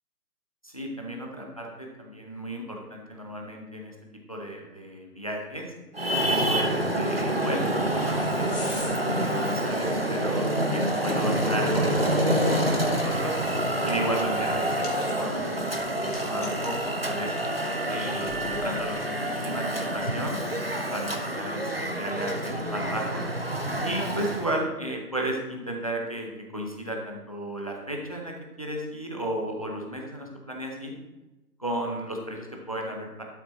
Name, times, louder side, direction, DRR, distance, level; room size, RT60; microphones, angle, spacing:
voice 1, 0.6-3.9 4.3-5.7 6.2-13.4 13.8-17.3 17.9-20.4 20.9-23.2 23.8-31.0 31.6-33.2, right 1 dB, 20° left, 1 dB, 0.8 m, -34 dB
Traffic noise roadway noise, 5.9-24.6, right 1 dB, 40° right, 0.5 m, -27 dB
sound 1, 7.6-19.0, left 3 dB, 45° left, 2.2 m, -46 dB
Wind instrument woodwind instrument, 17.1-21.5, equal, ahead, 1.4 m, -40 dB
12.0 x 6.0 x 4.1 m, 1.0 s
hypercardioid pair, 175°, 48 cm